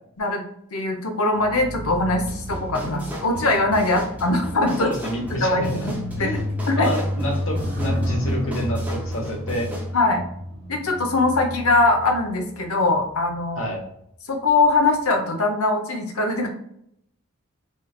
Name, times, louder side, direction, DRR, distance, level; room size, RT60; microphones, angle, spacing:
voice 1, 0.7-4.9 5.4-6.3 6.8-6.9 9.9-10.2 10.7-13.6 14.3-16.5, left 2 dB, 90° left, 4 dB, 0.8 m, -21 dB
sound 1, 1.4-13.0 13.7-14.0, equal, 65° right, 1.1 m, -31 dB
sound 2, 2.3-9.9, equal, 5° right, 0.6 m, -36 dB
voice 2, 4.8-5.9 6.2-6.5 6.7-9.7 13.6-13.8, equal, 65° left, 0 dB, 1.1 m, -28 dB
3.3 x 3.2 x 2.3 m, 0.73 s
head